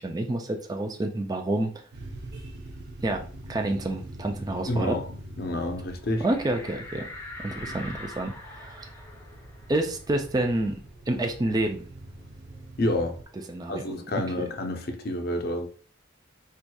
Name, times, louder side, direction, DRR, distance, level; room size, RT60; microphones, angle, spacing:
voice 1, 0.0-1.7 3.0-3.2 3.5-5.0 6.2-7.1 7.4-8.9 9.7-10.7 11.1-11.8 13.5-13.8, right 1 dB, 20° right, 0.4 m, -28 dB
sound 1, 1.9-13.2, right 1 dB, 55° right, 0.7 m, -44 dB
voice 2, 4.7-5.1 5.4-6.2 12.8-13.2 13.7-15.7, left 1 dB, 50° left, 0.6 m, -28 dB
sound 2, 6.1-11.3 11.7-11.8 12.1-13.7, left 2 dB, 10° left, 0.7 m, -44 dB
4.5 x 2.6 x 2.3 m
head